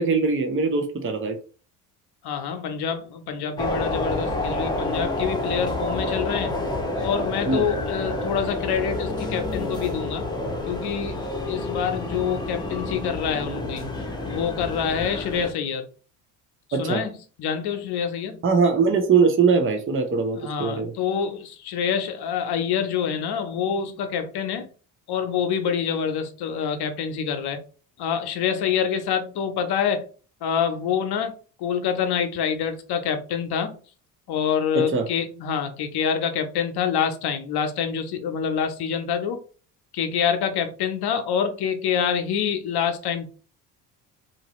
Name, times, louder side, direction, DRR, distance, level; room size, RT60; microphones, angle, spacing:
voice 1, 0.0-1.4 7.5-7.6 16.7-17.0 18.4-20.9 34.7-35.0, right 5 dB, 25° right, 0.8 m, -21 dB
voice 2, 2.2-6.5 7.0-10.3 10.7-11.2 11.5-13.8 14.2-15.9 16.8-17.1 17.4-18.4 20.3-24.7 25.1-27.6 28.0-30.0 30.4-31.3 31.6-33.8 34.3-39.4 39.9-43.3, left 7 dB, 55° left, 0.8 m, -26 dB
sound 1, 3.6-15.5, left 2 dB, 10° left, 0.9 m, -29 dB
2.8 x 2.5 x 3.0 m
hypercardioid pair, 65°, 46 cm